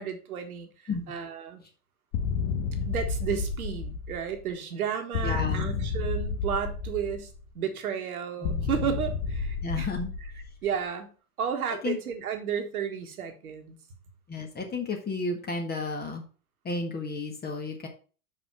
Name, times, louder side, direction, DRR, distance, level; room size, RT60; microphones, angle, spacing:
voice 1, 0.0-0.7 1.1-1.6 2.9-7.3 7.5-9.9 10.6-11.1 11.4-13.8, right 8 dB, 70° right, 6 dB, 1.6 m, -32 dB
sound 1, 2.1-4.4 5.1-7.4 8.4-10.7, left 5 dB, 45° left, 1.1 m, -31 dB
voice 2, 5.2-5.6 8.4-8.7 9.6-10.1 11.7-12.0 14.3-16.2 16.6-17.9, left 3 dB, 20° left, 2 dB, 1.4 m, -32 dB
6.0 x 5.0 x 5.6 m, 0.38 s
figure-of-eight pair, 90°, 45 cm